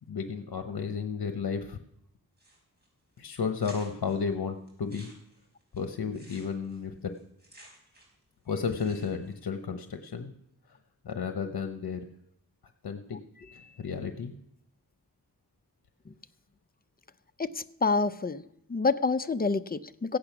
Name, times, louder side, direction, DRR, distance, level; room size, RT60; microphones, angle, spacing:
voice 1, 0.1-1.8 3.2-5.1 5.7-7.1 8.5-10.3 11.0-12.0 12.8-13.2 13.5-14.3, left 6 dB, 70° left, 7 dB, 1.0 m, -33 dB
sound 1, 2.4-2.9 3.2-3.3 3.6-4.2 4.7-8.2 8.5-9.3, right 1 dB, 25° right, 5.3 m, -54 dB
voice 2, 17.4-18.4 18.7-20.2, left 4 dB, 25° left, 12 dB, 0.6 m, -28 dB
16.5 x 8.7 x 5.9 m, 0.76 s
wide cardioid pair, 100°, 38 cm